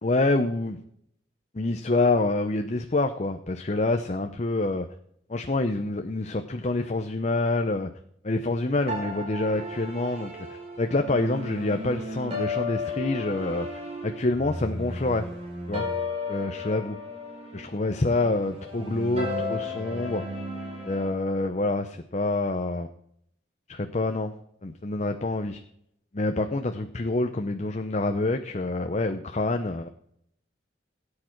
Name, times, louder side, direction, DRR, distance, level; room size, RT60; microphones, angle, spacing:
voice 1, 0.0-0.8 1.5-4.9 5.3-7.9 8.2-10.3 10.8-13.7 14.0-15.3 15.7-15.9 16.3-17.0 17.5-20.2 20.9-22.9 23.7-24.3 24.6-25.6 26.1-29.9, left 2 dB, 35° left, 7 dB, 0.7 m, -27 dB
sound 1, 8.9-21.1, left 2 dB, 35° right, 4.4 m, -34 dB
17.5 x 8.7 x 4.5 m, 0.71 s
head